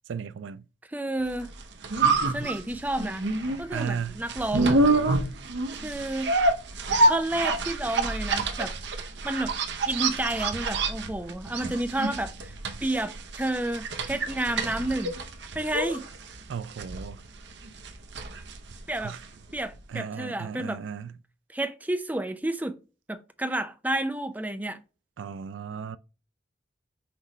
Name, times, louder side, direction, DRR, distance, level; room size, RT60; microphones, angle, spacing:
voice 1, 0.1-0.6 3.7-4.2 16.5-17.2 19.0-19.2 19.9-21.1 25.2-26.0, right 7 dB, 90° right, 0.3 m, -35 dB
voice 2, 0.9-1.5 2.3-3.2 3.6-4.8 5.8-6.3 7.1-8.7 9.0-9.5 9.9-12.5 12.8-15.1 15.5-16.0 18.9-19.2 19.5-20.8 21.5-22.8 23.1-24.8, right 1 dB, 10° right, 0.5 m, -30 dB
sound 1, 1.4-19.5 19.7-19.8, right 2 dB, 70° right, 0.8 m, -27 dB
6.0 x 3.1 x 5.4 m
head